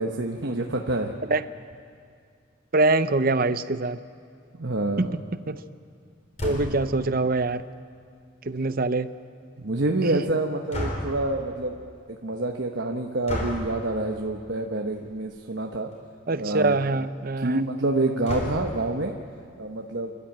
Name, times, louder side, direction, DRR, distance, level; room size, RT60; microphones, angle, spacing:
voice 1, 0.0-1.1 4.5-5.2 9.6-11.8 12.1-15.9 16.4-17.0 17.4-19.1 19.6-20.1, right 2 dB, 60° right, 2 dB, 1.1 m, -27 dB
voice 2, 2.7-4.0 5.0-5.1 5.5-5.6 6.4-7.6 8.5-9.1 10.1-10.2 16.3-17.7, right 2 dB, 45° right, 12 dB, 0.6 m, -24 dB
sound 1, 6.4-6.9 10.7-11.3 13.3-13.7 14.9-15.2 15.6-15.7 15.9-16.0 18.3-18.9, left 1 dB, 35° left, 4.5 m, -31 dB
29.0 x 12.5 x 8.8 m, 2.2 s
head